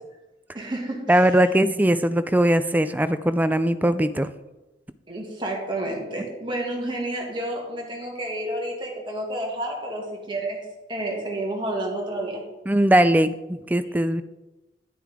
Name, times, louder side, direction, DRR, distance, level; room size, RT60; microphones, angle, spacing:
voice 1, 0.5-1.3 5.1-12.4 13.8-13.9, right 1 dB, 25° right, -2 dB, 2.1 m, -30 dB
voice 2, 1.1-4.3 12.7-14.2, right 1 dB, 10° right, 12 dB, 0.3 m, -20 dB
10.0 x 9.2 x 3.6 m, 1.1 s
head